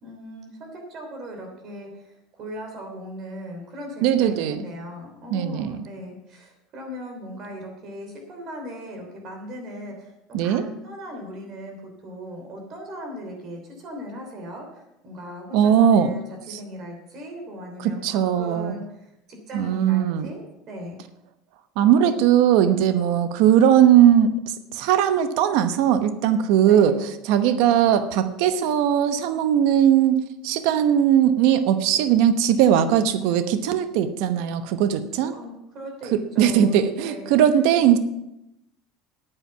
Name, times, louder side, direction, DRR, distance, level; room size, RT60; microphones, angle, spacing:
voice 1, 0.0-10.1 10.4-21.0 26.6-26.9 35.3-37.4, equal, 35° right, 3 dB, 3.1 m, -38 dB
voice 2, 4.0-4.6 5.3-5.8 10.3-10.6 15.5-16.1 16.5-16.6 17.8-18.8 19.5-20.3 21.8-35.3 36.1-38.0, right 9 dB, 65° right, 10 dB, 0.9 m, -19 dB
9.2 x 8.9 x 6.9 m, 0.87 s
cardioid pair, 165°, 0 cm